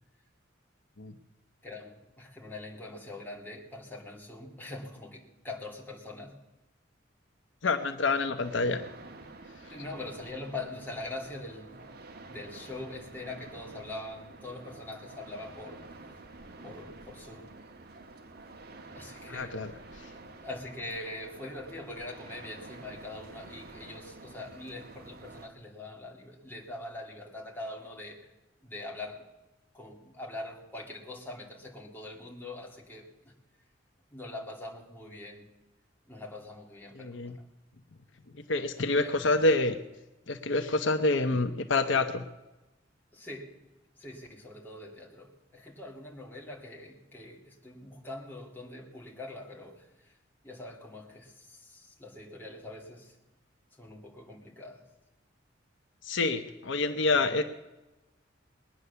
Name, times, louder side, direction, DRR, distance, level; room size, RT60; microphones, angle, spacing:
voice 1, 1.6-6.4 9.7-11.9 12.3-15.9 16.6-17.5 18.9-19.6 19.9-20.0 20.4-28.3 28.6-29.2 29.7-33.4 34.1-35.5 36.1-37.3 38.6-39.1 40.7-40.8 43.1-43.7 44.0-50.2 50.4-53.2 53.7-54.8 56.9-57.2, left 2 dB, 10° left, -1 dB, 2.6 m, -43 dB
voice 2, 7.6-8.8 19.3-19.7 37.0-37.3 38.5-39.8 40.3-42.2 56.1-57.4, left 3 dB, 75° left, 8 dB, 0.9 m, -27 dB
sound 1, 8.4-25.5, right 2 dB, 55° right, 1.2 m, -49 dB
20.5 x 9.7 x 6.9 m, 1.0 s
head